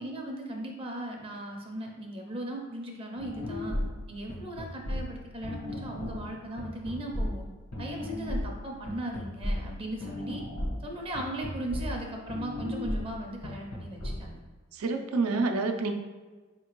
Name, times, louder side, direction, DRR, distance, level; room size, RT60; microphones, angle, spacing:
voice 1, 0.0-3.8 4.1-7.4 7.8-10.4 10.8-14.4, right 1 dB, 25° right, 1 dB, 0.5 m, -38 dB
sound 1, 3.2-14.2, left 1 dB, 75° left, 1.0 m, -35 dB
voice 2, 14.7-15.9, right 3 dB, 80° right, 5 dB, 0.4 m, -28 dB
4.3 x 2.8 x 3.0 m, 1.3 s
head